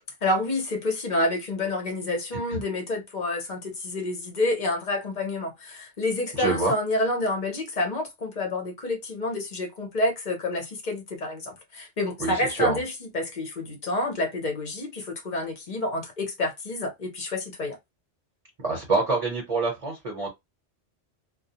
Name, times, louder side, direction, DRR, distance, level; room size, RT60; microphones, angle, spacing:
voice 1, 0.2-17.8, left 2 dB, 40° left, 0.9 m, -28 dB
voice 2, 6.3-6.7 12.2-12.8 18.6-20.3, right 3 dB, 30° right, 1.0 m, -26 dB
2.3 x 2.2 x 2.8 m
omnidirectional pair, 1.3 m